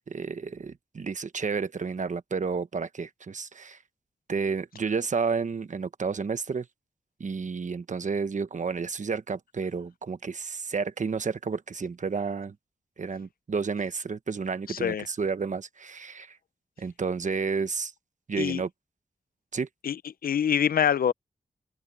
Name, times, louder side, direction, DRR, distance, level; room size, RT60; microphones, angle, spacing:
voice 1, 0.1-3.8 4.3-6.7 7.2-12.5 13.0-16.4 16.8-17.9 18.3-18.7 19.5-19.7, right 5 dB, 55° right, 1.2 m, -31 dB
voice 2, 14.7-15.1 18.4-18.6 19.8-21.1, left 9 dB, 80° left, 0.5 m, -25 dB
open air
wide cardioid pair, 90°, 15 cm